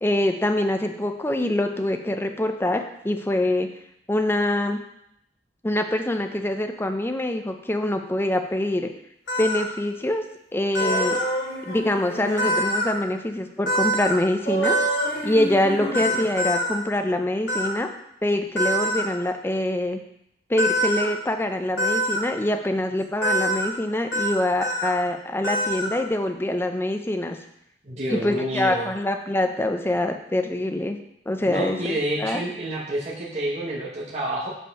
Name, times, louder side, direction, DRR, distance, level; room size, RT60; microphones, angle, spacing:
voice 1, 0.0-3.7 4.1-4.8 5.6-8.9 9.4-10.2 10.5-11.2 11.6-14.8 15.2-17.9 18.2-20.0 20.5-27.4 28.1-31.0 31.3-32.4, left 1 dB, 10° left, 6 dB, 0.5 m, -24 dB
sound 1, 9.3-9.6 10.7-11.3 12.4-12.9 13.7-14.2 14.6-15.1 15.9-16.7 17.5-17.7 18.6-19.0 20.6-21.1 21.8-22.2 23.2-23.7 24.1-24.3 24.6-24.9 25.4-26.0, equal, 85° left, 1.7 m, -24 dB
sound 2, 10.8-12.6 14.4-16.3, right 2 dB, 50° left, 3.1 m, -29 dB
voice 2, 27.8-28.9 31.5-34.5, right 1 dB, 35° right, -5 dB, 1.1 m, -28 dB
5.5 x 5.3 x 5.4 m, 0.76 s
head